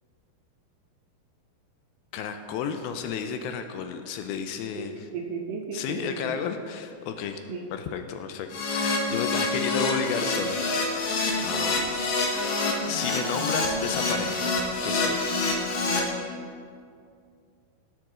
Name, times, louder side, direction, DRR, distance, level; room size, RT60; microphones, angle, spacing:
voice 1, 2.1-5.1 5.7-7.4 7.7-11.1 11.4-12.0 12.9-15.3, left 7 dB, 80° left, 7 dB, 2.4 m, -32 dB
voice 2, 5.1-6.4 7.5-7.7, right 5 dB, 75° right, 1 dB, 2.2 m, -35 dB
Keyboard (musical), 8.5-16.0, left 3 dB, 65° left, 2.8 m, -27 dB
18.5 x 7.7 x 3.8 m, 2.3 s
omnidirectional pair, 4.5 m